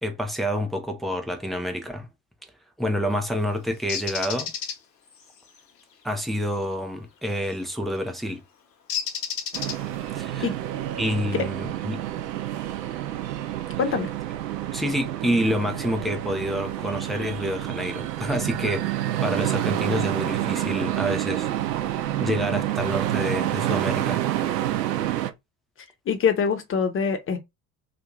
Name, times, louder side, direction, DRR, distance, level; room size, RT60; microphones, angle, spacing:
voice 1, 0.0-2.1 2.8-4.5 6.0-8.4 10.1-10.5 11.0-12.0 14.7-21.5 22.2-24.2, equal, ahead, 0.3 m, -28 dB
Bird, 3.9-4.8 7.4-7.6 8.9-10.1, left 7 dB, 80° left, 0.8 m, -30 dB
sound 1, 9.5-25.3, right 13 dB, 80° right, 0.5 m, -28 dB
voice 2, 13.8-14.1 26.1-27.4, left 6 dB, 25° left, 0.8 m, -24 dB
2.5 x 2.5 x 3.0 m
figure-of-eight pair, 65°, 49 cm